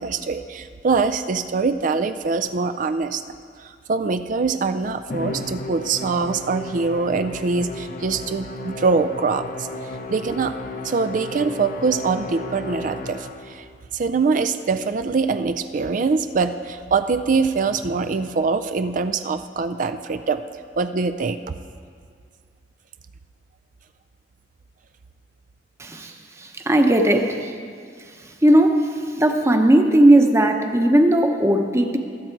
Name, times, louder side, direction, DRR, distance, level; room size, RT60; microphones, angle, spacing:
voice 1, 0.0-3.2 3.6-9.7 10.1-10.6 10.8-13.6 13.9-20.4 20.8-21.4, right 4 dB, 45° right, 11 dB, 0.4 m, -23 dB
Musical instrument, 5.1-13.7, left 1 dB, 50° left, 0.7 m, -34 dB
voice 2, 25.8-26.1 26.4-27.5 28.4-28.9 29.2-32.0, right 1 dB, 15° right, 5 dB, 0.9 m, -17 dB
22.0 x 7.6 x 4.6 m, 2.2 s
head